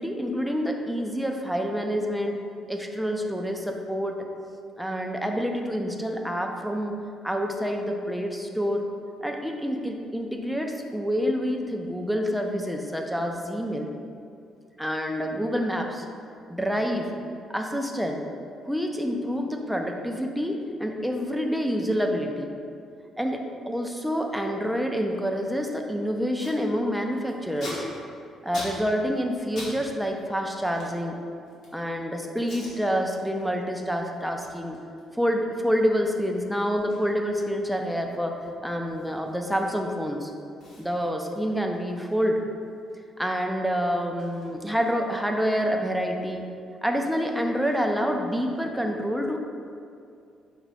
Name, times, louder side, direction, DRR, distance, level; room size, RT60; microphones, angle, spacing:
voice 1, 0.0-2.4 2.7-4.3 4.8-7.0 7.2-8.9 9.2-13.9 14.8-16.0 16.5-17.1 17.5-18.2 18.7-22.5 23.2-27.8 28.4-31.2 31.7-34.8 35.1-40.3 40.8-42.4 43.2-46.5 46.8-49.4, equal, ahead, 2 dB, 0.3 m, -27 dB
Packing tape duct tape, 26.4-26.6 26.9-29.7 30.0-31.8 32.4-32.7 33.2-33.4 33.8-40.0 40.2-40.3 40.6-43.0 43.2-45.2, left 1 dB, 55° left, 1.3 m, -45 dB
4.9 x 2.1 x 4.7 m, 2.4 s
cardioid pair, 140°, 0 cm